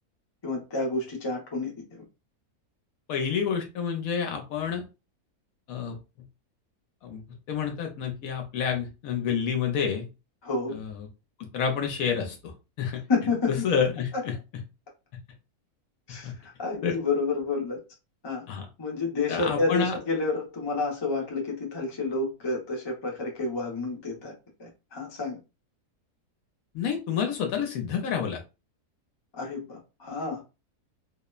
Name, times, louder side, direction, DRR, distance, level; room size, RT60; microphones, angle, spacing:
voice 1, 0.4-2.0 10.4-10.8 13.1-13.7 14.1-14.2 16.1-16.3 16.6-17.8 18.2-18.4 18.8-24.3 24.6-25.4 29.3-30.4, left 3 dB, 30° left, 0.5 m, -29 dB
voice 2, 3.1-4.8 5.7-6.0 7.0-7.2 7.5-10.1 10.7-11.1 11.4-13.0 13.5-14.3 16.2-16.3 16.8-17.0 18.5-18.7 19.3-19.9 26.7-28.4, left 7 dB, 70° left, 1.0 m, -29 dB
2.8 x 2.0 x 2.2 m
omnidirectional pair, 1.6 m